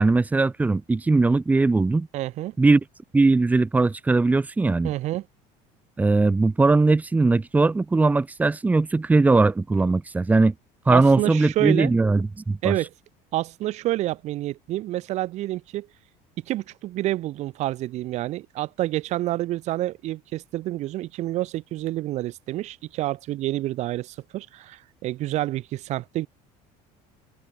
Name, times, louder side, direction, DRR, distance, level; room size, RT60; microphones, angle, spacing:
voice 1, 0.0-2.1 2.6-2.8 3.1-4.9 6.0-10.5 10.8-12.7, right 3 dB, 10° right, 3.1 m, -20 dB
voice 2, 2.1-2.5 4.8-5.3 10.9-11.9 12.6-12.9 13.3-15.9 16.4-26.3, right 15 dB, 45° right, 3.9 m, -28 dB
cardioid pair, 170°, 16 cm